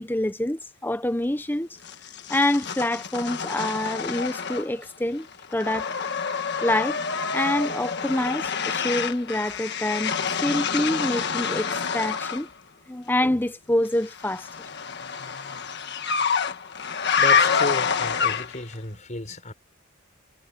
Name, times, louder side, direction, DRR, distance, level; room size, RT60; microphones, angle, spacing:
voice 1, 0.0-1.7 2.3-5.9 6.6-7.0 7.3-12.5 12.9-14.5, left 1 dB, 10° left, 0.7 m, -26 dB
sound 1, 1.8-4.9 5.2-12.5 14.0-18.7, left 6 dB, 55° left, 1.6 m, -27 dB
voice 2, 17.2-19.5, left 2 dB, 35° left, 6.0 m, -32 dB
head